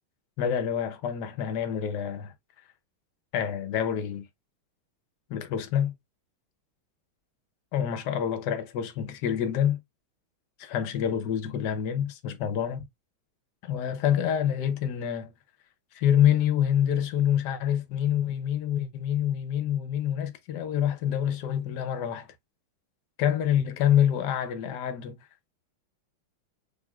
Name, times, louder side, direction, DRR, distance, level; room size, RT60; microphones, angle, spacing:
voice 1, 0.4-2.3 3.3-4.3 5.3-5.9 7.7-9.8 10.6-12.9 13.6-15.3 15.9-22.3 23.2-25.2, left 9 dB, 65° left, 1.2 m, -26 dB
5.2 x 3.2 x 2.3 m
omnidirectional pair, 2.4 m